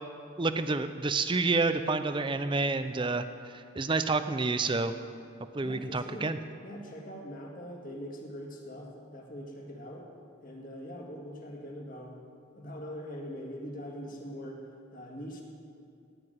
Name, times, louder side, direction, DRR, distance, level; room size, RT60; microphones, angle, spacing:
voice 1, 0.4-3.3 3.5-4.9 5.5-6.4, right 3 dB, 25° right, 10 dB, 0.5 m, -29 dB
voice 2, 5.6-6.3 6.6-10.1 10.4-12.2 12.5-15.4, equal, 40° left, 0 dB, 2.0 m, -42 dB
17.0 x 6.0 x 9.2 m, 2.4 s
head